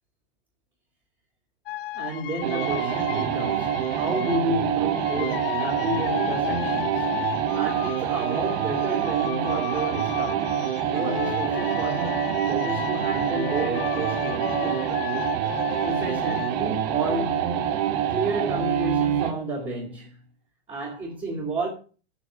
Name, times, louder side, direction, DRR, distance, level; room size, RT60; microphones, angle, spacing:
sound 1, 1.7-4.5 4.9-16.5, left 14 dB, 60° left, 1.0 m, -34 dB
voice 1, 1.9-10.5 10.9-12.1 12.5-14.8 15.8-17.5 18.1-20.1 20.7-21.7, right 2 dB, 15° right, 3.7 m, -31 dB
sound 2, 2.4-19.4, right 10 dB, 45° right, 1.7 m, -26 dB
14.0 x 4.9 x 7.0 m
supercardioid pair, 155°, 33 cm